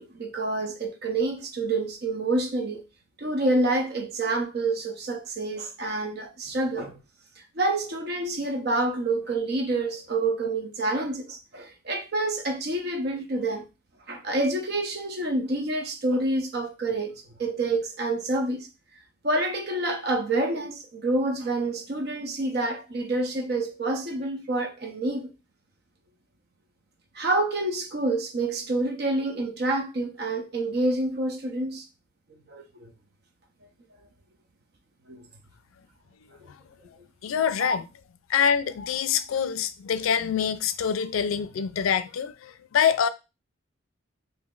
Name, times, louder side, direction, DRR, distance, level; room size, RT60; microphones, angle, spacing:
voice 1, 0.0-2.8 3.2-7.0 7.4-13.6 14.1-18.7 19.2-25.3 27.1-31.8 32.5-32.9 35.1-35.3, right 2 dB, 50° right, 0.6 m, -28 dB
voice 2, 37.2-37.8 38.3-43.1, left 7 dB, 85° left, 0.4 m, -25 dB
3.0 x 2.7 x 3.7 m
head